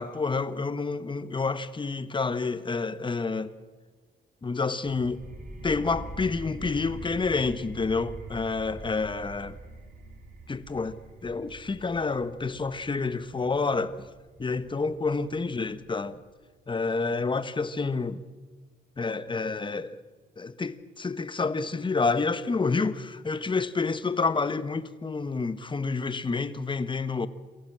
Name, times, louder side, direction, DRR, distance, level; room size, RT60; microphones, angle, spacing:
voice 1, 0.0-3.5 4.4-5.2 5.6-9.6 10.5-14.1 14.4-16.2 16.7-18.2 19.0-20.0 20.4-27.3, left 4 dB, 25° left, 1.2 m, -29 dB
sound 1, 4.8-16.2, right 2 dB, 40° right, 4.3 m, -44 dB
23.5 x 15.5 x 7.6 m
cardioid pair, 90°, 20 cm